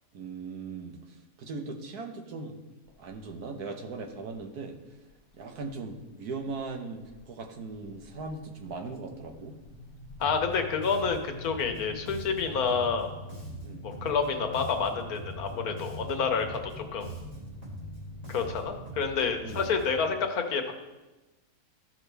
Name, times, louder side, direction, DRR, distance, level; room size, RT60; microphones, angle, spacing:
voice 1, 0.1-2.6 3.0-4.8 5.3-9.6 13.6-13.8 19.4-19.6, right 4 dB, 80° right, 3 dB, 1.6 m, -39 dB
sound 1, 2.9-3.4 3.9-4.4 5.1-5.9 6.3-6.7 7.0-19.6, left 2 dB, 45° left, 0.8 m, -47 dB
voice 2, 10.2-13.1 13.8-17.1 18.3-20.7, left 5 dB, 70° left, 5 dB, 1.4 m, -29 dB
Bass guitar, 10.2-20.1, right 2 dB, 25° right, 2.8 m, -43 dB
14.5 x 6.2 x 3.4 m, 1.1 s
omnidirectional pair, 1.6 m